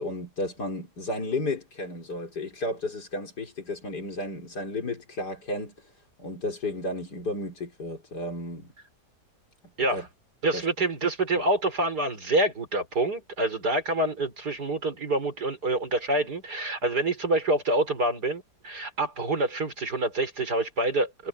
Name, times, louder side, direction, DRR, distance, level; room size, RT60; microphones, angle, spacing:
voice 1, 0.0-5.8 6.2-8.7 9.9-10.1 10.5-10.6 11.3-11.4, left 2 dB, 80° left, 4.8 m, -33 dB
voice 2, 10.4-21.3, right 2 dB, 75° right, 5.5 m, -27 dB
omnidirectional pair, 1.7 m